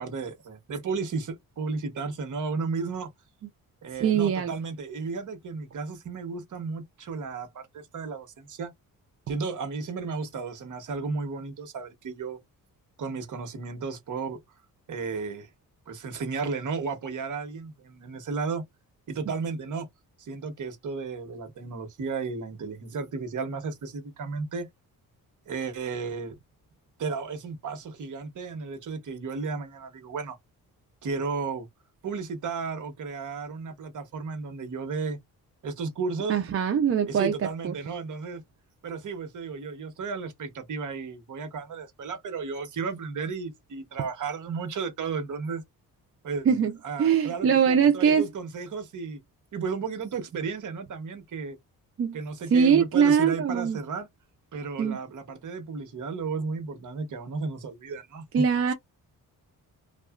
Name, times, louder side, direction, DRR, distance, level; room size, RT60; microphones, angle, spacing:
voice 1, 0.0-3.1 3.8-8.7 9.3-12.4 13.0-14.4 14.9-15.5 15.9-18.6 19.1-19.9 20.2-24.7 25.5-26.4 27.0-30.4 31.0-31.7 32.0-35.2 35.6-36.4 37.1-38.4 38.8-45.6 46.2-46.5 46.8-49.2 49.5-51.6 52.1-54.1 54.5-58.7, right 4 dB, 60° right, 1.0 m, -33 dB
voice 2, 4.0-4.5 36.3-37.3 37.6-37.7 46.5-46.7 47.0-48.2 52.0-52.2 52.5-53.8 54.8-55.0 58.3-58.7, right 7 dB, 40° right, 0.4 m, -22 dB
2.8 x 2.3 x 2.3 m
cardioid pair, 115°, 35 cm